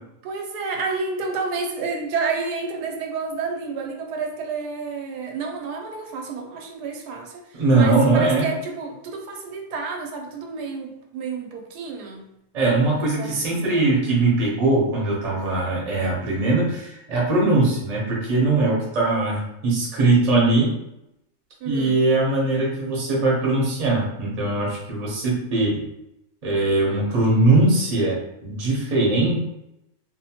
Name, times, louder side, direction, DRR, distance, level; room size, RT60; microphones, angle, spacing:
voice 1, 0.2-12.2 12.8-13.8 21.6-22.0, right 4 dB, 90° right, 2 dB, 1.1 m, -30 dB
voice 2, 7.5-8.5 12.5-20.7 21.6-25.8 26.4-28.2 28.4-29.4, right 2 dB, 40° right, -3 dB, 0.6 m, -20 dB
2.7 x 2.1 x 2.7 m, 0.85 s
omnidirectional pair, 1.7 m